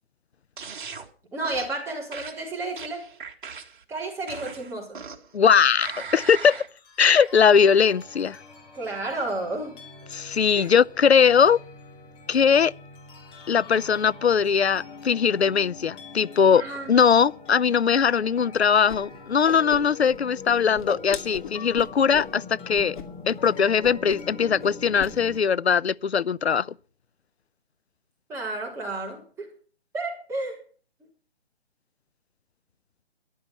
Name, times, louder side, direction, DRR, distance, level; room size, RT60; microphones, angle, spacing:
sound 1, 0.6-1.1 1.4-1.8 2.1-3.8 4.3-5.3 5.8-6.7 7.1-7.3, right 6 dB, 50° right, 2.1 m, -39 dB
voice 1, 1.3-3.1 3.9-5.0 8.7-9.8 10.6-10.8 16.5-16.9 28.3-29.5 29.9-30.6, right 2 dB, 10° right, 3.8 m, -32 dB
voice 2, 5.3-6.6 7.0-8.4 10.1-11.6 12.3-12.7 13.5-16.6 16.9-23.0 23.3-26.7, left 7 dB, 90° left, 0.6 m, -20 dB
sound 2, 6.7-25.4, left 4 dB, 15° left, 2.4 m, -44 dB
Whoosh swoosh swish, 18.9-19.0 19.3-20.2 20.4-22.3 22.7-23.0 23.3-23.5 23.8-24.3 24.6-25.1, left 6 dB, 50° left, 2.7 m, -37 dB
14.0 x 11.0 x 5.7 m
figure-of-eight pair, 145°, 31 cm